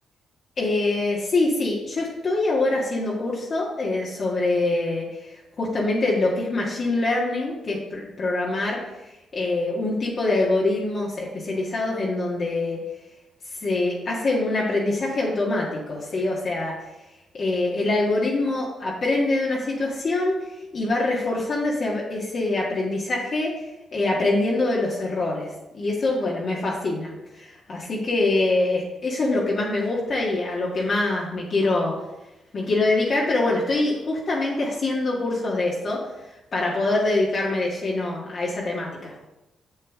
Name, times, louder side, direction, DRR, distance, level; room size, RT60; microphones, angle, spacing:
voice 1, 0.6-8.8 9.3-12.8 13.6-16.7 17.3-20.3 20.7-23.6 23.9-25.5 25.7-31.9 32.5-36.0 36.5-39.1, left 2 dB, 50° left, -4 dB, 1.7 m, -24 dB
7.1 x 6.5 x 3.7 m, 0.96 s
supercardioid pair, 60°, 0 cm